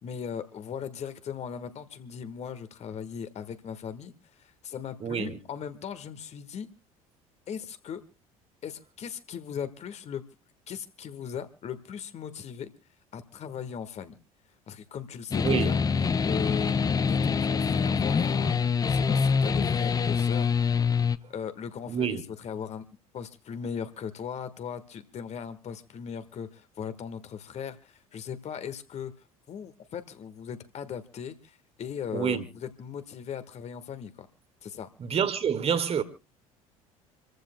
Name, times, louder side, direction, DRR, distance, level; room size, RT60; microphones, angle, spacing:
voice 1, 0.0-4.1 4.4-6.7 7.5-8.0 8.6-10.2 10.7-12.7 13.1-14.2 14.7-15.8 16.2-16.7 17.0-20.5 21.3-22.8 23.1-29.1 29.5-34.3 34.6-34.9, left 7 dB, 35° left, 1.5 m, -38 dB
voice 2, 5.0-5.4 15.4-15.7 21.9-22.2 32.1-32.4 35.1-36.0, right 7 dB, 35° right, 1.8 m, -27 dB
sound 1, 15.3-21.2, left 5 dB, 20° left, 0.6 m, -25 dB
28.0 x 14.5 x 2.2 m
figure-of-eight pair, 60°, 18 cm